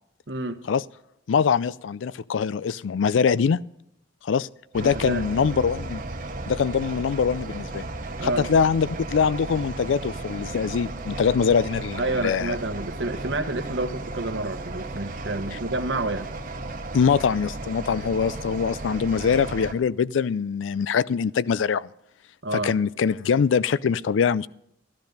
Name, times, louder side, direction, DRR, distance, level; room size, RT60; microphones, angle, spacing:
voice 1, 0.3-0.6 4.8-5.2 8.2-8.5 12.0-16.3 22.4-22.7, right 2 dB, 75° right, 8 dB, 1.1 m, -29 dB
voice 2, 1.3-3.6 4.2-4.5 4.7-6.0 6.5-7.8 8.2-12.6 15.5-15.6 16.9-21.9 22.5-24.5, left 6 dB, 90° left, 20 dB, 0.4 m, -23 dB
sound 1, 4.7-19.7, right 2 dB, 45° right, 1.1 m, -35 dB
13.0 x 12.0 x 5.3 m, 0.76 s
head